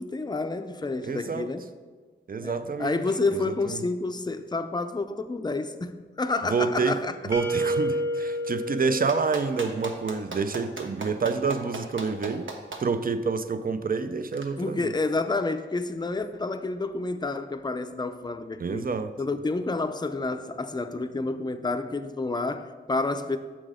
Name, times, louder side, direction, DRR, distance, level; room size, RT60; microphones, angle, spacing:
voice 1, 0.0-1.6 2.4-7.1 14.6-18.8 19.2-23.4, left 3 dB, 20° left, 8 dB, 0.4 m, -29 dB
voice 2, 1.0-1.5 2.3-3.0 3.3-3.8 6.5-7.0 7.2-12.5 12.8-14.9 18.6-19.1, right 4 dB, 45° right, 11 dB, 0.5 m, -28 dB
sound 1, 7.3-10.2, right 1 dB, 15° right, 1.1 m, -30 dB
Clapping, 9.1-12.8 14.3-14.4, right 3 dB, 70° right, 1.0 m, -36 dB
7.2 x 6.0 x 5.0 m, 1.5 s
wide cardioid pair, 80°, 20 cm